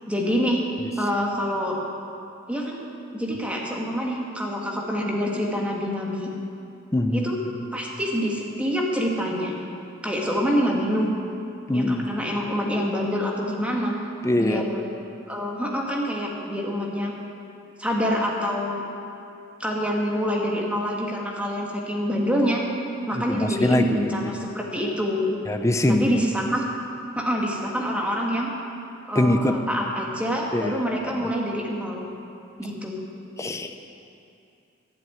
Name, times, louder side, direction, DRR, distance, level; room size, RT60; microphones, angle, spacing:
voice 1, 0.1-0.6 1.0-1.8 2.5-2.8 3.1-6.3 7.1-7.4 7.7-9.5 10.0-11.1 11.7-14.0 14.3-14.8 15.3-17.1 17.8-18.8 19.6-22.6 23.1-25.2 25.9-26.6 27.1-28.5 29.1-32.0 32.6-32.9, equal, 5° right, -2 dB, 1.6 m, -26 dB
voice 2, 6.9-7.3 11.7-12.1 14.2-14.7 23.1-24.3 25.5-26.1 29.1-29.5 30.5-30.8 31.2-31.3 33.4-33.7, left 1 dB, 15° left, 6 dB, 0.6 m, -23 dB
12.0 x 7.4 x 8.9 m, 2.6 s
head